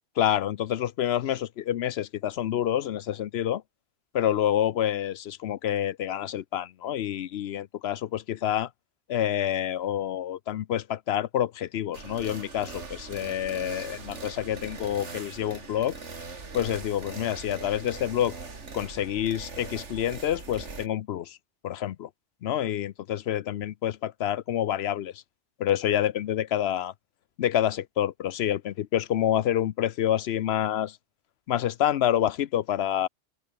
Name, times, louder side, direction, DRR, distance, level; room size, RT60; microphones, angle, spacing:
voice 1, 0.2-3.6 4.1-8.7 9.1-16.0 16.5-18.3 18.7-21.4 21.6-22.1 22.4-25.2 25.6-26.9 27.4-31.0 31.5-33.1, left 11 dB, 65° left, 0.8 m, -27 dB
sound 1, 11.9-20.9, right 4 dB, 75° right, 2.8 m, -41 dB
open air
omnidirectional pair, 1.2 m